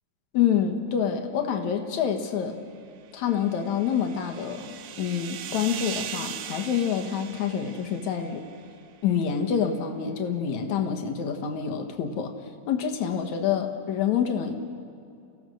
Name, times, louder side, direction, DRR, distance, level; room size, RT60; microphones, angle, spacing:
voice 1, 0.3-2.6 3.1-8.5 9.0-12.3 12.7-14.5, left 8 dB, 60° left, 5 dB, 2.4 m, -27 dB
sound 1, 3.1-8.7, right 9 dB, 85° right, 1.4 m, -39 dB
29.0 x 16.5 x 6.5 m, 2.5 s
omnidirectional pair, 4.2 m